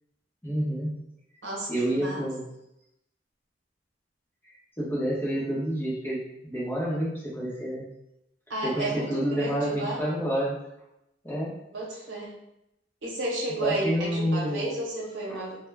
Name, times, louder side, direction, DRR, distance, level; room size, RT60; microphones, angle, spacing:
voice 1, 0.4-1.0 1.7-2.4 4.8-7.8 8.6-10.6 11.2-11.6 13.6-14.8 15.3-15.4, equal, 10° left, -7 dB, 0.8 m, -29 dB
voice 2, 1.4-2.2 8.5-10.0 11.7-12.3 13.0-15.6, right 2 dB, 90° right, -3 dB, 0.8 m, -32 dB
2.1 x 2.1 x 3.4 m, 0.84 s
head